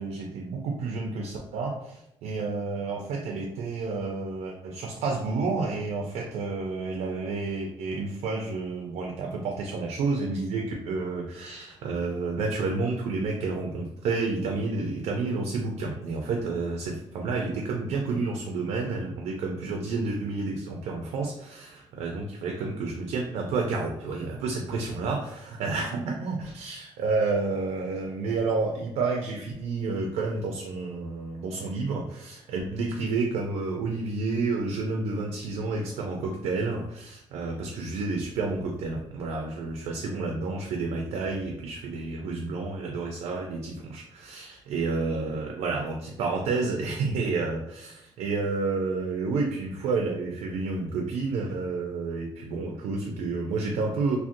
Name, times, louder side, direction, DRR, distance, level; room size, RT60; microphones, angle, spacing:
voice 1, 0.0-54.2, right 3 dB, 90° right, 1 dB, 0.4 m, -30 dB
2.5 x 2.0 x 2.5 m, 0.80 s
cardioid pair, 80°, 10 cm